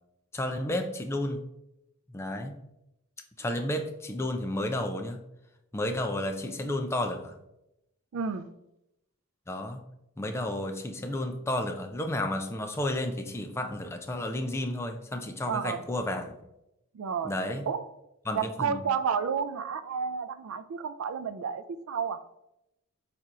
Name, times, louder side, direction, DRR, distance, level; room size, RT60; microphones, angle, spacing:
voice 1, 0.3-1.4 2.1-2.6 3.4-5.2 5.7-7.4 9.5-9.8 10.2-16.4 17.2-17.6 18.3-18.9, left 1 dB, 10° left, 5 dB, 0.3 m, -32 dB
voice 2, 8.1-8.5 15.5-15.8 16.9-17.4 17.7-17.9 18.3-22.2, right 6 dB, 80° right, 11 dB, 0.4 m, -31 dB
4.2 x 2.5 x 4.6 m, 0.85 s
head